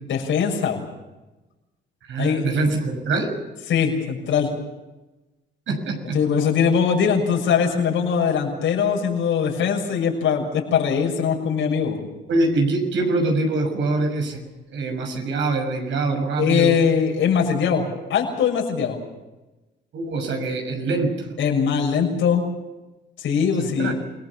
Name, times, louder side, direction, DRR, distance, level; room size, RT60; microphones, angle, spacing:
voice 1, 0.1-0.9 2.2-2.5 3.7-4.5 6.1-12.0 16.4-19.0 21.4-22.4 23.2-23.9, left 7 dB, 75° left, -1 dB, 6.8 m, -21 dB
voice 2, 2.1-3.3 5.7-6.2 12.3-14.4 14.7-16.8 19.9-21.3 23.6-23.9, right 2 dB, 75° right, 3 dB, 6.6 m, -24 dB
28.0 x 19.5 x 7.2 m, 1.1 s
cardioid pair, 90°, 20 cm